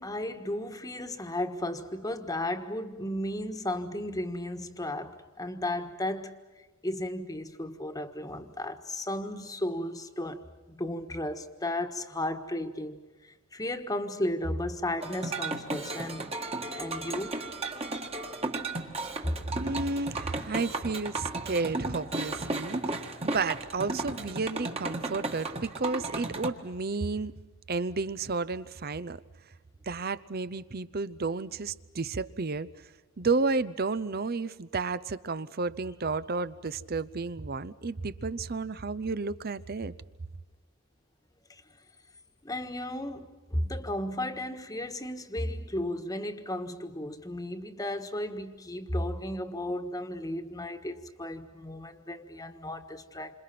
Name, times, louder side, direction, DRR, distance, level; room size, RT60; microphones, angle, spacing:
voice 1, 0.0-6.4 6.8-16.3 16.7-17.4 19.2-19.4 41.5-41.6 42.4-53.3, left 1 dB, 15° left, 1.5 m, -34 dB
sound 1, 15.0-26.5, right 2 dB, 25° right, 1.8 m, -35 dB
voice 2, 19.5-27.3 27.7-29.2 29.9-32.7 33.2-39.9, right 3 dB, 45° right, 0.7 m, -32 dB
28.5 x 26.5 x 5.9 m
head